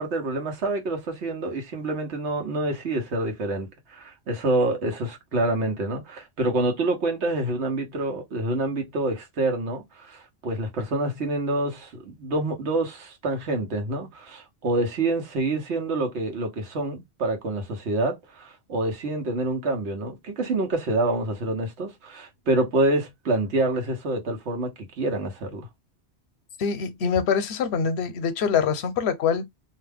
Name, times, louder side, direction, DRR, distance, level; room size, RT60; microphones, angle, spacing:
voice 1, 0.0-24.7 25.0-25.7, right 2 dB, 85° right, 1.3 m, -27 dB
voice 2, 26.6-29.5, left 6 dB, 75° left, 0.9 m, -24 dB
2.7 x 2.1 x 3.3 m
omnidirectional pair, 1.1 m